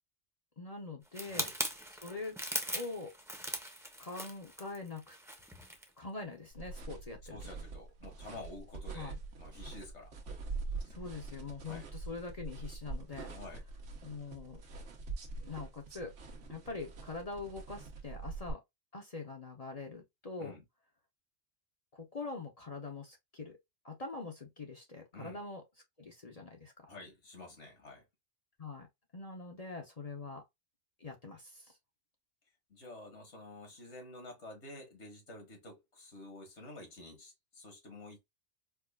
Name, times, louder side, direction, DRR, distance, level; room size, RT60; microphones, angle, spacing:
voice 1, 0.6-1.5 1.9-2.4 2.7-3.1 4.0-5.2 6.0-7.4 8.9-9.2 10.9-13.3 14.0-14.6 15.4-16.1 16.5-18.6 18.9-20.6 21.9-23.6 23.8-25.6 26.0-26.9 28.6-28.9 29.1-30.4 31.0-31.8, left 3 dB, 35° left, 0.8 m, -43 dB
sound 1, 1.1-5.9 6.3-6.5, equal, 5° right, 0.7 m, -40 dB
sound 2, 6.5-18.5, right 3 dB, 75° right, 1.2 m, -44 dB
voice 2, 7.3-10.1 11.7-11.9 13.3-13.6 20.4-20.6 25.1-25.4 26.9-28.0 32.7-38.2, left 2 dB, 70° left, 1.9 m, -50 dB
4.7 x 2.4 x 2.2 m
omnidirectional pair, 1.2 m